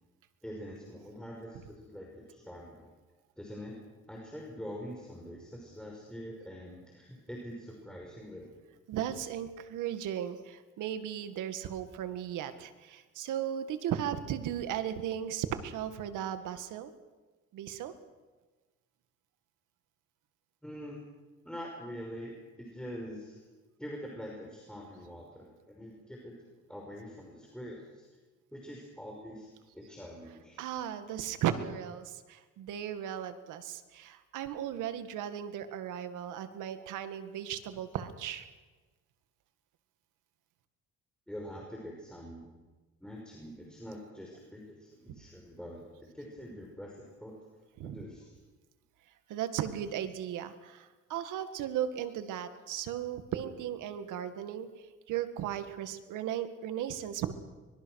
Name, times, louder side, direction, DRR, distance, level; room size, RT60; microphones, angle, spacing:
voice 1, 0.4-2.9 3.4-3.8 4.1-8.5 20.6-21.0 21.4-23.4 23.8-26.3 26.7-28.1 28.5-29.5 29.7-30.6 41.3-42.5 43.0-47.3 47.8-48.4, equal, 5° left, -2 dB, 5.6 m, -44 dB
voice 2, 8.9-16.9 17.5-17.9 30.6-38.5 45.1-45.2 47.8-48.0 49.3-54.7 55.1-57.3, right 10 dB, 90° right, 9 dB, 1.9 m, -36 dB
24.5 x 21.5 x 6.5 m, 1.3 s
cardioid pair, 90°, 30 cm